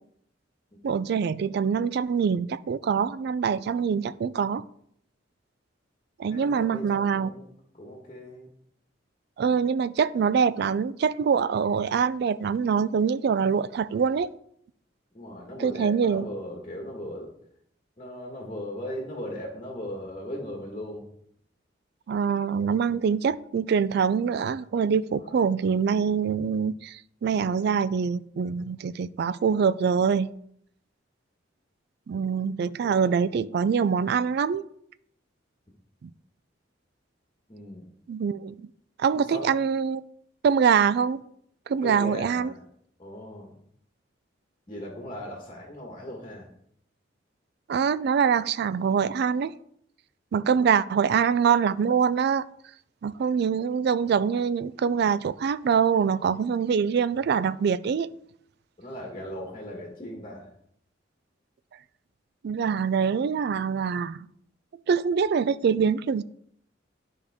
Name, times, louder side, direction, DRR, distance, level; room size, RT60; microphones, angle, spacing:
voice 1, 0.8-4.6 6.2-7.3 9.4-14.3 15.6-16.3 22.1-30.3 32.1-34.6 36.0-36.1 38.1-38.7 39.0-40.0 40.4-41.2 41.7-42.5 47.7-49.5 50.3-52.4 53.0-58.1 62.4-64.3 64.9-66.2, right 6 dB, 60° right, 0.3 m, -24 dB
voice 2, 6.2-7.5 7.7-8.5 15.1-17.3 18.0-21.1 22.7-23.1 25.2-25.4 32.8-33.2 37.5-37.9 39.1-39.6 41.8-42.6 43.0-43.6 44.7-46.5 50.3-50.7 58.8-60.5, equal, 30° left, 1.4 m, -38 dB
10.5 x 5.1 x 3.5 m
head